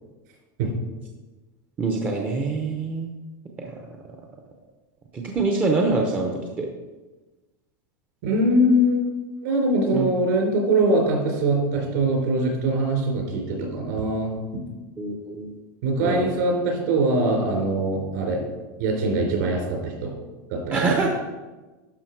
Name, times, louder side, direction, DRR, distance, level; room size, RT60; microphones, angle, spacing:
voice 1, 1.8-3.1 3.6-3.8 5.1-6.7 9.9-10.0 15.0-15.6 16.0-16.3 20.7-21.1, right 3 dB, 15° right, 2 dB, 0.7 m, -25 dB
voice 2, 8.2-9.1 9.4-14.6 15.8-18.4 18.8-20.2 20.5-20.9, right 1 dB, 60° right, 0 dB, 3.6 m, -22 dB
11.5 x 5.8 x 4.6 m, 1.2 s
supercardioid pair, 170°, 11 cm